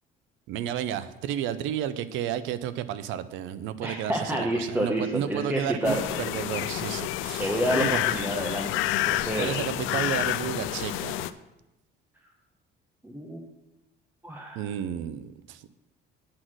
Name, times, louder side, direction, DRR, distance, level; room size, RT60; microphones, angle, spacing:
voice 1, 0.5-8.0 9.4-11.3 14.6-15.7, right 10 dB, 80° right, 14 dB, 0.6 m, -32 dB
voice 2, 3.8-6.0 7.4-9.5 13.0-13.4 14.2-14.7, equal, 10° right, 0 dB, 1.0 m, -29 dB
sound 1, 5.8-11.3, left 14 dB, 80° left, 0.4 m, -29 dB
9.6 x 4.2 x 6.1 m, 0.96 s
cardioid pair, 95°, 20 cm